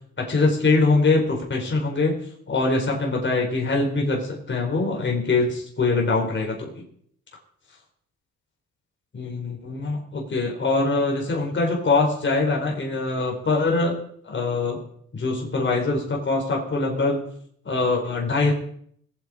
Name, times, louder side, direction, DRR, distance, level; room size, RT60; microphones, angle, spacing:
voice 1, 0.2-2.1 2.5-6.8 9.1-13.9 14.2-14.8 15.1-17.2 17.6-18.5, left 3 dB, 40° left, 0 dB, 4.4 m, -23 dB
20.5 x 8.1 x 5.1 m, 0.65 s
cardioid pair, 90°, 30 cm